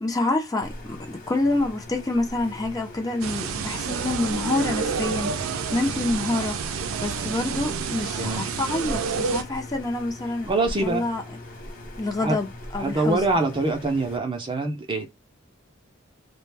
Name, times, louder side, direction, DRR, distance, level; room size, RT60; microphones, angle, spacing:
voice 1, 0.0-5.3 5.7-6.6 7.0-10.5 10.8-11.2 12.0-13.3, left 2 dB, 20° left, 0.6 m, -27 dB
sound 1, 0.6-14.2, left 1 dB, 45° left, 0.8 m, -41 dB
sound 2, 3.2-9.4, right 6 dB, 90° right, 0.4 m, -29 dB
voice 2, 10.5-11.1 12.2-12.4 12.8-15.1, right 2 dB, 25° right, 0.5 m, -24 dB
2.4 x 2.1 x 3.3 m
head